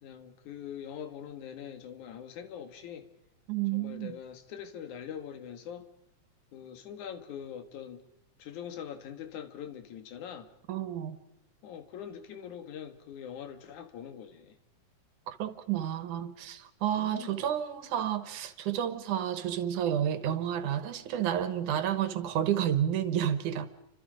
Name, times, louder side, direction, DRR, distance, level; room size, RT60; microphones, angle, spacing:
voice 1, 0.0-3.1 3.7-5.9 6.5-8.0 8.4-10.5 11.6-14.6 16.9-17.5, left 8 dB, 80° left, 3.1 m, -43 dB
voice 2, 3.5-4.1 10.7-11.2 15.3-23.7, right 10 dB, 90° right, 2.8 m, -30 dB
29.5 x 26.0 x 5.2 m
omnidirectional pair, 3.4 m